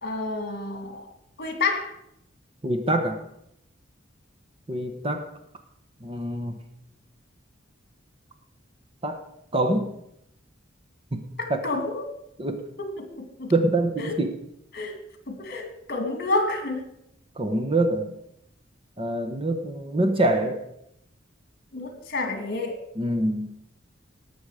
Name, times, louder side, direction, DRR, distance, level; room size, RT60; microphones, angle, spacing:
voice 1, 0.0-1.1 1.4-1.9 11.4-12.1 12.8-13.5 14.0-14.1 14.7-15.0 15.3-16.9 21.7-22.8, left 3 dB, 50° left, 5 dB, 2.4 m, -29 dB
voice 2, 2.6-3.2 4.7-5.3 6.0-6.6 9.0-9.2 9.5-9.9 11.1-11.6 12.4-12.6 13.5-14.4 17.4-18.1 19.0-20.6 23.0-23.5, right 1 dB, 30° right, 7 dB, 1.0 m, -25 dB
18.0 x 7.0 x 4.9 m, 0.79 s
head